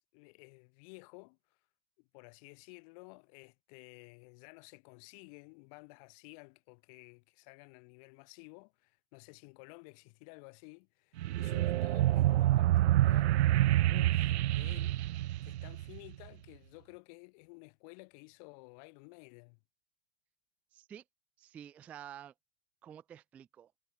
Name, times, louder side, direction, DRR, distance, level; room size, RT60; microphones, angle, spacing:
voice 1, 0.0-1.4 2.0-15.0 15.4-19.6, left 34 dB, 30° left, 2.7 m, -54 dB
sound 1, 11.2-16.1, right 14 dB, 80° right, 0.5 m, -27 dB
voice 2, 20.7-21.0 21.4-22.3 22.8-23.7, right 10 dB, 5° right, 0.4 m, -50 dB
supercardioid pair, 170°, 33 cm